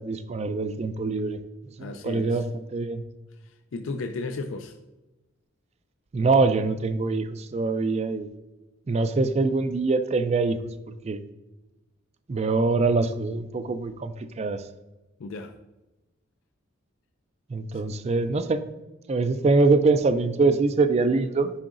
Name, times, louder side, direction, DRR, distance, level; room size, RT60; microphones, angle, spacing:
voice 1, 0.0-1.4 1.8-2.4 2.7-3.0 6.1-8.3 8.9-10.7 11.0-11.2 12.3-14.6 17.5-18.6 19.1-21.5, right 3 dB, 30° right, 0.3 m, -24 dB
voice 2, 1.8-2.5 3.3-4.8 15.2-15.6 17.7-17.8, left 3 dB, 65° left, 0.4 m, -35 dB
9.8 x 3.8 x 2.5 m
head